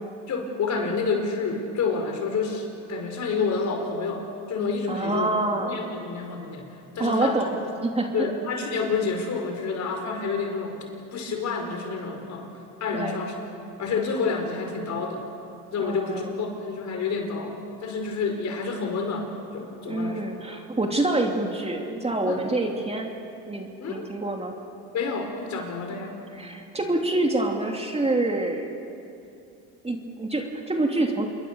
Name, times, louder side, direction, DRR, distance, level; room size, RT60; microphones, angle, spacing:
voice 1, 0.3-6.7 6.9-7.4 8.1-10.8 11.1-12.5 12.8-13.3 13.8-15.2 15.7-17.6 17.8-20.2 22.3-22.4 23.8-24.0 24.9-26.2, left 4 dB, 50° left, 4 dB, 5.1 m, -29 dB
voice 2, 4.9-5.9 7.0-7.5 7.8-8.3 12.9-13.2 15.8-16.3 19.9-23.1 23.5-24.5 26.3-28.7 29.8-31.2, right 2 dB, 15° right, 2 dB, 2.8 m, -26 dB
28.0 x 22.0 x 7.0 m, 2.6 s
supercardioid pair, 85°, 36 cm